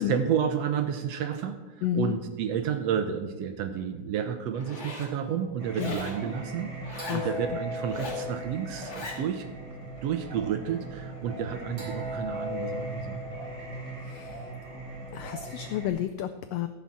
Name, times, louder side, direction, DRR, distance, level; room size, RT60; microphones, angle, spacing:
voice 1, 0.0-9.5 9.8-13.2, right 8 dB, 70° right, 8 dB, 1.6 m, -31 dB
voice 2, 1.8-2.2 5.8-6.0 7.1-7.3 14.0-14.5 15.1-16.7, left 12 dB, 90° left, 10 dB, 1.4 m, -31 dB
Zipper (clothing), 4.5-5.1 5.7-6.2 6.8-7.3 7.8-8.3 8.7-9.2, left 2 dB, 25° left, 2.0 m, -39 dB
Singing, 5.6-15.9, equal, 35° right, 4.2 m, -38 dB
14.5 x 5.8 x 7.4 m, 1.3 s
omnidirectional pair, 3.4 m